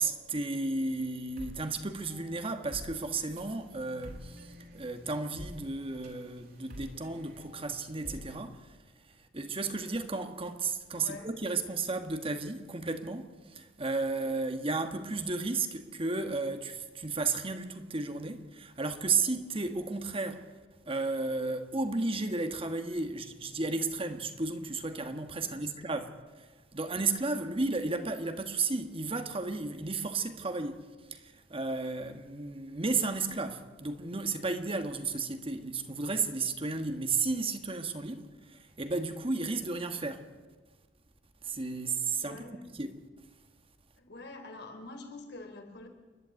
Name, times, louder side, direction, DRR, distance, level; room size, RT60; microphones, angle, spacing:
voice 1, 0.0-8.8 9.3-20.5 20.9-40.3 41.4-42.9, right 3 dB, 30° right, 1.4 m, -33 dB
sound 1, 1.1-8.4, equal, 50° right, 3.7 m, -49 dB
voice 2, 10.9-11.4 25.4-25.9 42.2-42.7 43.9-45.9, left 2 dB, 60° left, 3.3 m, -46 dB
28.5 x 11.5 x 9.3 m
head